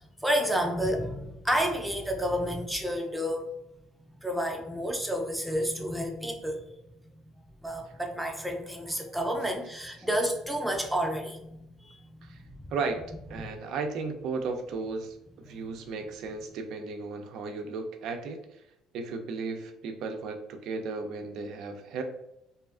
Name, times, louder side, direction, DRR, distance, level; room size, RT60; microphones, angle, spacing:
voice 1, 0.2-3.5 4.2-6.6 7.6-12.7, equal, 5° right, 2 dB, 0.5 m, -30 dB
voice 2, 13.3-18.4 18.9-22.0, right 4 dB, 70° right, 5 dB, 0.4 m, -35 dB
2.6 x 2.3 x 2.4 m, 0.84 s
cardioid pair, 100°, 0 cm